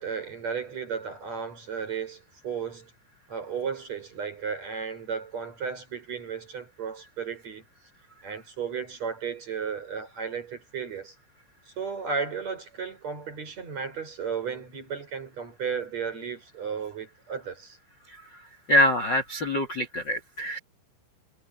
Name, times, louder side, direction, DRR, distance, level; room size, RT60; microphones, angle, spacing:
voice 1, 0.0-2.9 3.3-7.6 8.2-11.1 11.8-17.8, right 6 dB, 35° right, 6.3 m, -34 dB
voice 2, 18.7-20.6, equal, 35° left, 1.8 m, -24 dB
omnidirectional pair, 5.6 m